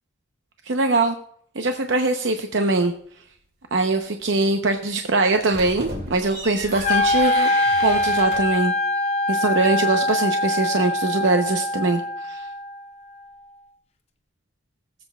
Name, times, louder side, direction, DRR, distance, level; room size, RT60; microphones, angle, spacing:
voice 1, 0.7-1.1 1.6-2.9 3.7-7.5 7.8-8.7 9.3-12.4, right 2 dB, 75° right, 5 dB, 0.7 m, -22 dB
sound 1, 5.3-8.6, right 1 dB, 55° right, 2.1 m, -34 dB
Wind instrument woodwind instrument, 6.8-12.9, left 2 dB, 35° left, 0.8 m, -23 dB
21.5 x 7.8 x 2.3 m, 0.62 s
head